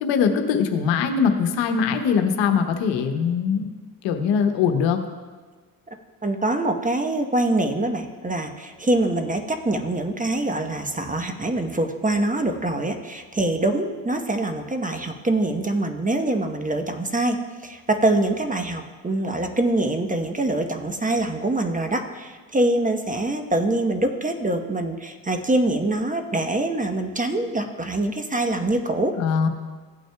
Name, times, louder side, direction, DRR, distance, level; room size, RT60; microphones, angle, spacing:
voice 1, 0.0-3.7 4.0-5.0 29.1-29.5, left 6 dB, 70° left, 6 dB, 1.1 m, -21 dB
voice 2, 6.2-17.4 17.6-29.1, right 2 dB, 15° right, 6 dB, 1.0 m, -24 dB
15.5 x 9.0 x 2.3 m, 1.4 s
hypercardioid pair, 55°, 46 cm